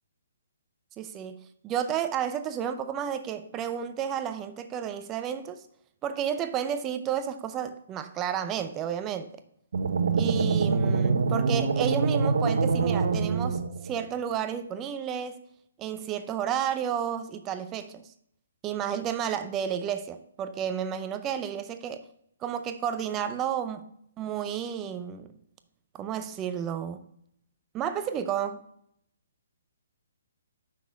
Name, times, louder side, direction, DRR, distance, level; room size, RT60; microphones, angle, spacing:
voice 1, 1.0-5.6 6.0-9.3 10.2-15.4 15.8-18.1 18.6-22.0 22.4-25.3 25.9-27.0 27.7-28.7, right 9 dB, 20° right, 0.5 m, -32 dB
sound 1, 9.7-14.0, right 4 dB, 65° right, 0.9 m, -25 dB
6.0 x 5.8 x 3.6 m
hypercardioid pair, 150°, 0 cm